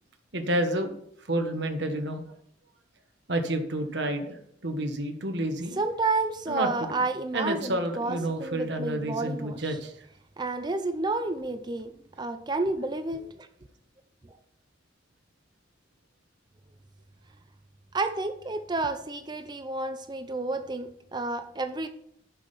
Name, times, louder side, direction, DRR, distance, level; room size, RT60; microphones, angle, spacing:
voice 1, 0.3-0.9 1.3-2.2 3.3-5.8 6.5-6.9 7.3-9.9, right 1 dB, 60° right, 1.3 m, -29 dB
voice 2, 5.8-9.8 10.4-11.9 12.2-13.5 14.2-14.3 17.9-21.9, right 3 dB, 25° right, 0.5 m, -30 dB
8.5 x 6.3 x 5.6 m
head